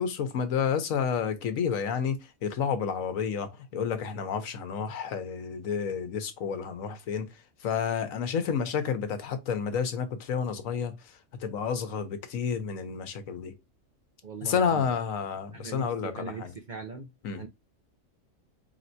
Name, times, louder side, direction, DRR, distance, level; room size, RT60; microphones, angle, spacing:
voice 1, 0.0-7.3 7.6-13.5 14.4-16.5 17.2-17.4, left 7 dB, 80° left, 1.2 m, -30 dB
voice 2, 14.2-14.9 15.5-17.1 17.3-17.5, right 5 dB, 55° right, 0.5 m, -40 dB
4.3 x 3.4 x 2.6 m
omnidirectional pair, 1.4 m